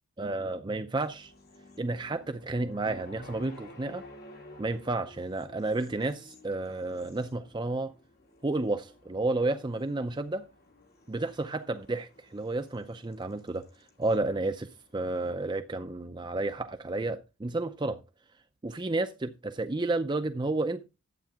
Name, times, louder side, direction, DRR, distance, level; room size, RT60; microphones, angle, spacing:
voice 1, 0.2-1.3 1.8-4.0 4.6-7.9 8.4-10.5 11.1-18.0 18.6-20.8, right 2 dB, 20° right, 0.5 m, -31 dB
sound 1, 1.0-15.3, left 1 dB, 50° left, 2.5 m, -54 dB
11.5 x 8.3 x 3.6 m
head